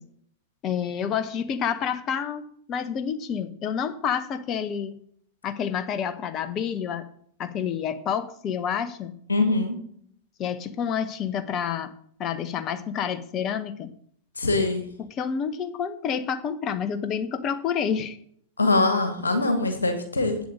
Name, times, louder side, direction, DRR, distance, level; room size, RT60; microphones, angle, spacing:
voice 1, 0.6-2.4 2.7-5.0 5.4-7.1 7.4-9.2 10.4-11.9 12.2-13.9 15.1-18.2, left 7 dB, 35° left, 11 dB, 1.1 m, -28 dB
voice 2, 9.3-9.8 14.4-14.8 18.6-20.4, left 2 dB, 75° left, 8 dB, 1.8 m, -23 dB
8.8 x 7.6 x 6.4 m, 0.63 s
figure-of-eight pair, 90°, 0 cm